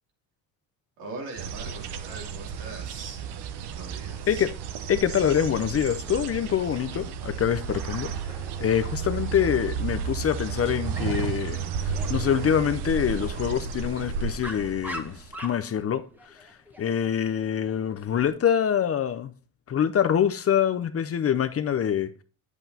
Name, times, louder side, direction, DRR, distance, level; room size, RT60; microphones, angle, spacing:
voice 1, 1.0-3.4 3.7-4.5 8.1-8.3, right 3 dB, 85° right, 3.0 m, -41 dB
sound 1, 1.4-15.4, right 6 dB, 55° right, 1.0 m, -33 dB
voice 2, 4.9-19.3 19.7-22.2, left 9 dB, 30° left, 0.6 m, -25 dB
Dog, 7.7-18.3, equal, 5° right, 1.2 m, -45 dB
8.9 x 8.0 x 2.8 m
supercardioid pair, 85°, 47 cm